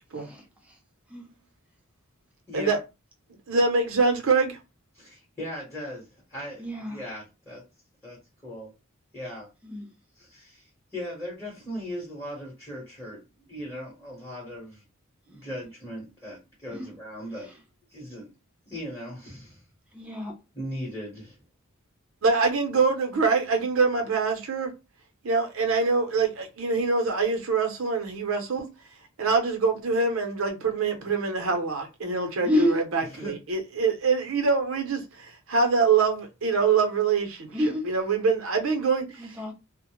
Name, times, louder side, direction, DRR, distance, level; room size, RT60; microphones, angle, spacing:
voice 1, 2.5-2.8 4.9-7.6 8.0-8.7 9.1-9.5 10.1-14.8 15.3-17.6 17.9-18.3 18.7-19.6 20.5-21.4 33.1-33.4, equal, 10° left, 0.9 m, -38 dB
voice 2, 3.5-4.6 22.2-24.7 25.2-28.7 29.2-37.5 37.8-39.0, right 4 dB, 70° right, 0.6 m, -24 dB
voice 3, 6.6-7.0 9.6-9.8 15.3-15.5 16.7-16.9 19.9-20.3 32.4-32.7 37.5-37.9 39.2-39.5, equal, 5° right, 0.5 m, -28 dB
2.1 x 2.0 x 2.9 m
head